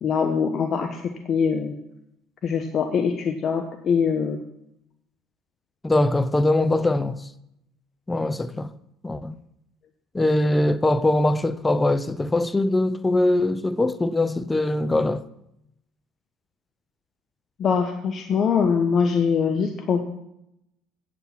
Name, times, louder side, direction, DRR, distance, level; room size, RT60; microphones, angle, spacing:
voice 1, 0.0-1.8 2.4-4.4 17.6-20.0, left 6 dB, 45° left, 1.0 m, -23 dB
voice 2, 5.8-7.3 8.1-8.7 9.0-9.4 10.1-15.2, left 2 dB, 15° left, 0.6 m, -22 dB
9.0 x 8.1 x 6.1 m
hypercardioid pair, 65°, 0 cm